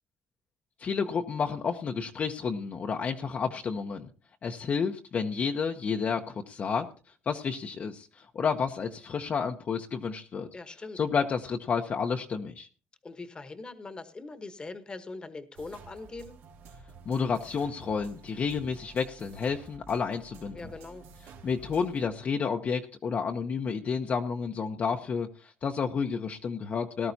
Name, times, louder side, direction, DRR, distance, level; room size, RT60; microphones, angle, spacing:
voice 1, 0.8-4.1 4.4-6.9 7.3-10.5 10.9-12.7 17.1-20.7 21.4-27.1, left 6 dB, 40° left, 3 dB, 0.8 m, -30 dB
voice 2, 10.5-11.0 13.0-16.3 20.5-21.0, left 3 dB, 25° left, 10 dB, 1.2 m, -42 dB
sound 1, 15.6-22.1, right 5 dB, 80° right, 2.8 m, -51 dB
18.5 x 12.5 x 2.8 m, 0.37 s
cardioid pair, 130°, 4 cm